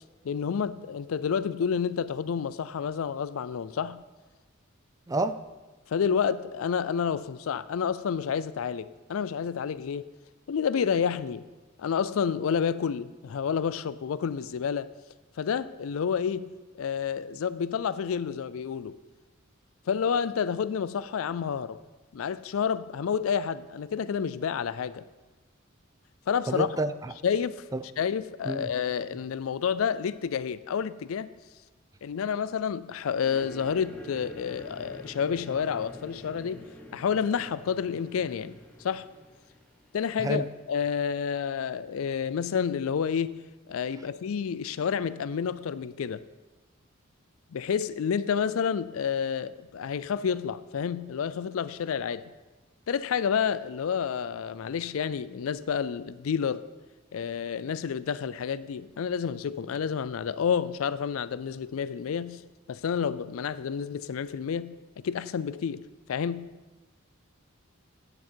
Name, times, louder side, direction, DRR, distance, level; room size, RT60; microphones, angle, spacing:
voice 1, 0.2-4.0 5.9-10.1 10.5-11.5 11.8-14.9 15.4-19.0 19.9-21.8 22.1-25.0 26.3-26.7 27.2-27.6 28.0-31.3 32.0-36.6 36.9-39.1 39.9-43.4 43.7-46.2 47.5-52.3 52.9-56.7 57.1-62.4 62.7-64.8 65.0-65.8 66.1-66.5, left 7 dB, 80° left, 0.4 m, -29 dB
voice 2, 5.1-5.4 26.5-27.1 27.7-27.8 28.4-28.7 40.2-40.5, right 2 dB, 15° right, 0.3 m, -29 dB
sound 1, 33.2-40.6, left 1 dB, 5° left, 1.2 m, -47 dB
10.0 x 7.9 x 4.6 m
head